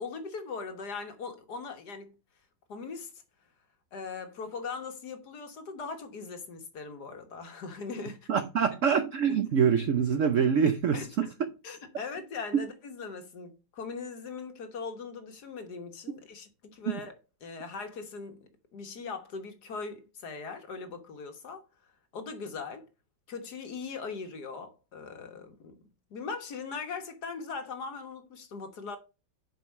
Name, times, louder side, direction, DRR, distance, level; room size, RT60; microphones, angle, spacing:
voice 1, 0.0-2.2 2.7-3.1 3.9-8.3 9.3-9.4 10.9-11.3 11.6-17.1 17.4-21.6 22.1-22.8 23.3-25.8 26.1-29.0, left 4 dB, 55° left, 1.8 m, -40 dB
voice 2, 8.3-11.3 12.5-12.7 16.9-17.0, right 7 dB, 70° right, 0.7 m, -25 dB
7.7 x 5.4 x 5.3 m
omnidirectional pair, 2.1 m